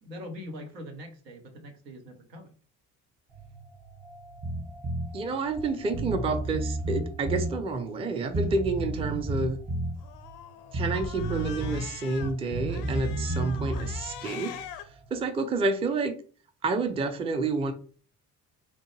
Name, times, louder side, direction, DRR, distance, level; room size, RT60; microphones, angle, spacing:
voice 1, 0.0-2.5, left 1 dB, 85° right, 0.8 m, -42 dB
sound 1, 3.3-15.2, right 1 dB, 65° right, 1.6 m, -50 dB
Bass guitar, 4.4-5.1 5.6-5.7 5.9-7.6 8.3-10.0 10.7-11.9 12.1-14.0, right 1 dB, 35° right, 1.0 m, -31 dB
voice 2, 5.1-9.6 10.7-14.6 15.1-16.1 16.6-17.7, right 3 dB, 15° right, 0.3 m, -29 dB
Cat, 10.0-12.3 12.7-14.8, left 10 dB, 75° left, 0.6 m, -43 dB
3.6 x 2.2 x 3.1 m
figure-of-eight pair, 45°, 48 cm